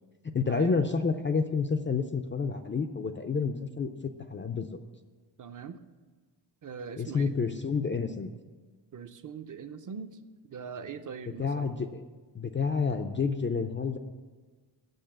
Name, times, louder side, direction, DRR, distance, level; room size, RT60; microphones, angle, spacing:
voice 1, 0.2-4.8 6.9-8.3 11.3-12.0 12.3-14.0, left 5 dB, 30° left, 6 dB, 0.3 m, -29 dB
voice 2, 5.4-5.8 6.6-7.3 8.9-10.2 10.5-11.7, right 6 dB, 45° right, 9 dB, 0.5 m, -41 dB
8.0 x 6.9 x 7.4 m, 1.4 s
wide cardioid pair, 170°, 45 cm